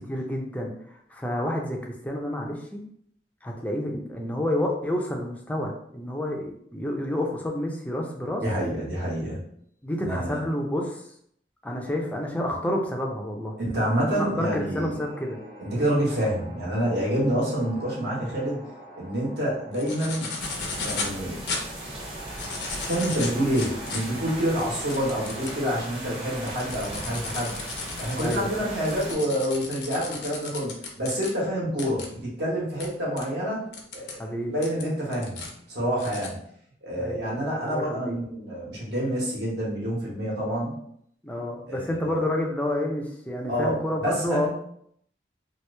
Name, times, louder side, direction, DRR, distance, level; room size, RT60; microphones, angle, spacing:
voice 1, 0.1-0.7 1.1-2.8 3.4-8.4 9.8-11.0 11.6-13.5 14.0-15.4 28.2-28.7 34.2-34.5 37.0-38.2 41.2-44.5, left 1 dB, 10° left, 0 dB, 0.4 m, -29 dB
voice 2, 8.4-9.4 10.0-10.5 13.6-15.0 15.6-18.6 19.0-20.3 20.8-21.4 22.8-27.6 28.0-33.7 33.9-34.2 34.5-35.4 35.7-36.4 36.8-40.8 41.7-42.2 43.5-44.5, equal, 70° right, -5 dB, 1.3 m, -27 dB
sound 1, 14.3-25.9, right 2 dB, 50° right, 1.3 m, -45 dB
sound 2, 19.7-21.1 21.5-21.6 22.2-25.6 26.1-31.3 31.8-32.1 32.8-32.9 33.2-33.3 33.7-34.1 34.6-35.5 36.0-36.3, left 4 dB, 75° left, 0.7 m, -35 dB
sound 3, 20.4-29.1, right 1 dB, 30° right, 0.8 m, -37 dB
3.0 x 2.6 x 3.2 m, 0.68 s
head